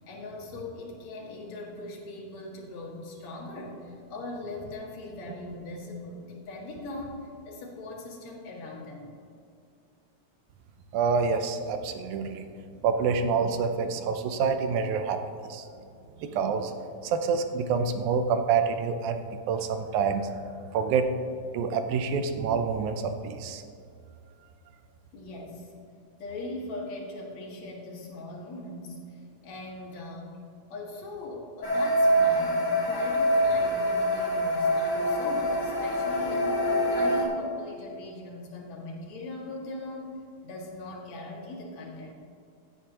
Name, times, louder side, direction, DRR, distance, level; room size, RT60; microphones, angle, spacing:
voice 1, 0.0-9.1 15.7-15.8 25.1-25.7 26.2-30.4 30.7-40.1 40.4-42.1, left 2 dB, 65° left, -3 dB, 2.9 m, -40 dB
voice 2, 10.9-12.5 12.8-15.7 16.2-20.3 20.7-21.1 21.5-23.6, right 5 dB, 80° right, 7 dB, 2.1 m, -27 dB
sound 1, 31.6-37.2, equal, 40° left, 1.1 m, -25 dB
15.5 x 8.3 x 2.9 m, 2.4 s
omnidirectional pair, 3.5 m